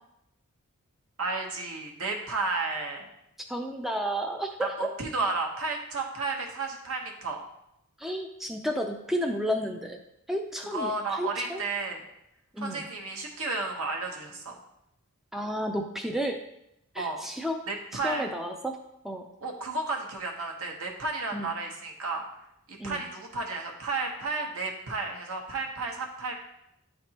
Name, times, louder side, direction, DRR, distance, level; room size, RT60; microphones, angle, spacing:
voice 1, 1.2-3.1 4.6-7.4 10.7-12.0 12.6-14.6 17.0-17.2 17.7-18.3 19.4-22.2 22.7-26.3, right 3 dB, 70° right, 1 dB, 1.0 m, -32 dB
voice 2, 3.5-4.7 8.0-10.0 10.3-11.6 12.5-12.9 15.3-16.4 16.9-17.6 18.0-18.8 19.0-19.2 21.3-21.5 22.8-23.0, equal, ahead, 2 dB, 0.4 m, -32 dB
9.7 x 3.4 x 2.8 m, 0.81 s
head